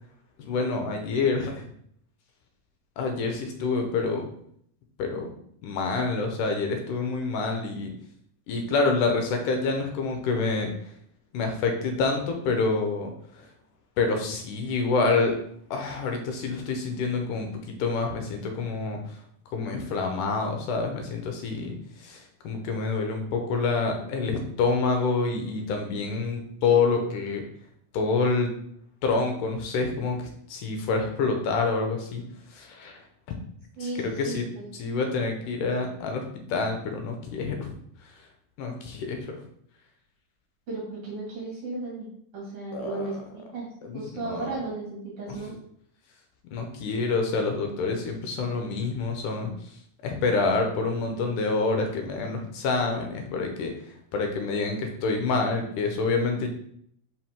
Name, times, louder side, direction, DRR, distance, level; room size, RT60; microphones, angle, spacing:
voice 1, 0.4-1.6 3.0-4.3 5.0-5.3 5.6-7.9 8.5-10.7 11.3-13.1 13.4-13.5 14.0-15.4 15.7-19.2 19.5-27.4 27.9-28.5 29.0-32.2 32.5-33.0 33.8-34.5 34.8-37.7 38.6-39.4 42.7-43.2 43.8-44.5 45.3-45.4 46.5-49.5 50.0-53.7 54.1-56.5, left 4 dB, 70° left, 3 dB, 2.4 m, -27 dB
voice 2, 33.8-34.7 40.7-42.1 42.3-43.7 43.9-45.5, right 3 dB, 45° right, -5 dB, 2.7 m, -35 dB
5.5 x 5.5 x 3.6 m, 0.67 s
omnidirectional pair, 4.0 m